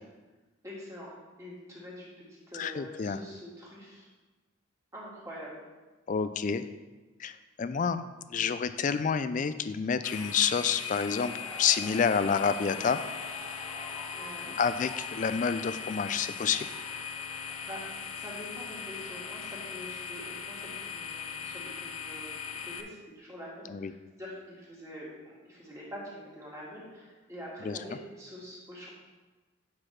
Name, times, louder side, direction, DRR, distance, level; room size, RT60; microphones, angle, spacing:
voice 1, 0.6-1.1 1.4-4.1 4.9-5.5 14.2-14.6 17.6-17.8 18.1-28.9, equal, 15° right, -5 dB, 1.7 m, -45 dB
voice 2, 2.5-3.2 6.1-6.6 7.2-8.0 8.3-11.3 11.6-13.0 14.6-16.7 23.7-23.9 27.6-27.8, left 6 dB, 35° left, 12 dB, 0.3 m, -28 dB
sound 1, 10.0-22.8, left 6 dB, 85° left, 0.6 m, -39 dB
sound 2, 10.6-22.3, left 1 dB, 10° left, 1.3 m, -49 dB
8.5 x 6.0 x 3.3 m, 1.2 s
head